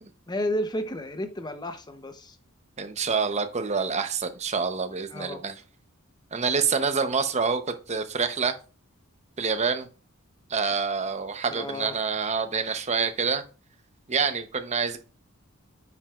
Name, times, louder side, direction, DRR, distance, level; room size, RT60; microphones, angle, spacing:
voice 1, 0.3-2.4 5.1-5.4 11.5-11.9, left 1 dB, 20° left, 0.7 m, -32 dB
voice 2, 2.8-5.5 6.3-8.5 9.4-9.9 10.5-13.4 14.1-15.0, right 5 dB, 35° right, 0.8 m, -27 dB
9.2 x 5.9 x 2.4 m
head